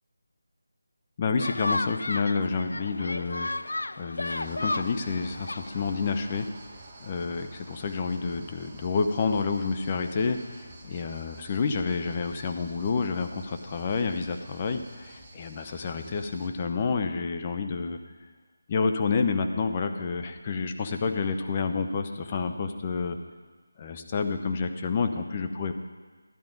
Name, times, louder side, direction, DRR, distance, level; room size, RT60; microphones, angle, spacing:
voice 1, 1.2-6.5 7.0-18.0 18.7-23.2 23.8-25.7, left 4 dB, 25° left, 6 dB, 0.7 m, -29 dB
sound 1, 1.4-6.5, left 2 dB, 85° left, 0.4 m, -34 dB
sound 2, 4.2-16.5, right 2 dB, 20° right, 1.2 m, -49 dB
12.5 x 10.5 x 3.9 m, 1.4 s
figure-of-eight pair, 165°, 0 cm